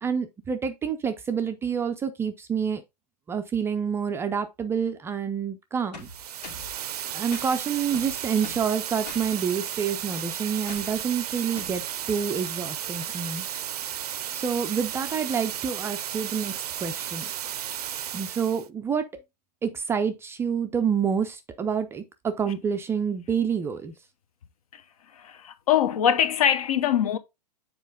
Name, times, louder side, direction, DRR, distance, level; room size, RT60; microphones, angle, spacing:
voice 1, 0.0-2.8 3.3-6.1 7.1-13.4 14.3-17.3 18.1-19.1 19.6-23.9, right 7 dB, 10° right, 0.4 m, -28 dB
sound 1, 5.9-6.7 7.3-7.5 7.9-8.7 9.1-9.3 10.7-11.0 11.6-11.8, left 3 dB, 80° left, 2.3 m, -42 dB
sound 2, 6.0-18.7, right 10 dB, 65° right, 0.6 m, -34 dB
voice 2, 25.1-27.2, left 9 dB, 60° left, 1.0 m, -23 dB
7.3 x 4.4 x 3.6 m
hypercardioid pair, 115°, 21 cm